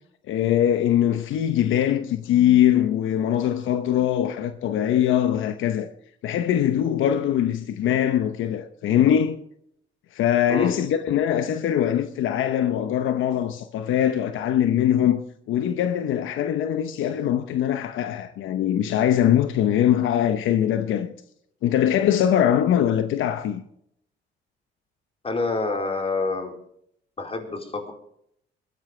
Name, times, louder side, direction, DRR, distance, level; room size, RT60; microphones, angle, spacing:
voice 1, 0.3-5.9 6.2-9.4 10.1-21.1 21.6-23.6, left 10 dB, 80° left, 0.9 m, -22 dB
voice 2, 25.2-26.6 27.2-27.9, left 3 dB, 30° left, 4.3 m, -27 dB
22.0 x 15.0 x 3.3 m
cardioid pair, 90°, 20 cm